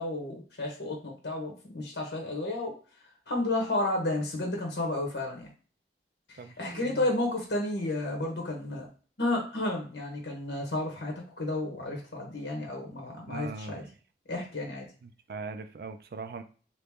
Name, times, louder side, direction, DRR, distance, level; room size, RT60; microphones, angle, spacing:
voice 1, 0.0-2.7 3.3-5.5 6.3-8.9 9.2-13.8 14.3-14.9, left 2 dB, 75° left, 0 dB, 1.0 m, -32 dB
voice 2, 6.4-7.1 13.3-13.8 15.0-16.4, right 4 dB, 60° right, 8 dB, 0.4 m, -40 dB
2.9 x 2.6 x 3.5 m, 0.39 s
head